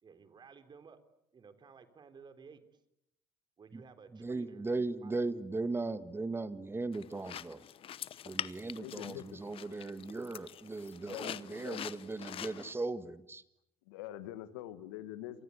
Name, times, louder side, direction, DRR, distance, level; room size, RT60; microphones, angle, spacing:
voice 1, 0.0-1.0 1.3-2.6 3.6-4.7 5.0-5.1, right 5 dB, 40° right, 10 dB, 3.6 m, -55 dB
voice 2, 4.2-7.6 8.2-13.4, right 3 dB, 20° right, 13 dB, 1.7 m, -37 dB
sound 1, 6.9-12.7, left 10 dB, 50° left, 1.0 m, -45 dB
voice 3, 8.8-9.6 11.0-11.8 13.9-15.4, left 13 dB, 80° left, 13 dB, 1.7 m, -45 dB
28.0 x 24.5 x 8.3 m, 0.80 s
hypercardioid pair, 70°, 12 cm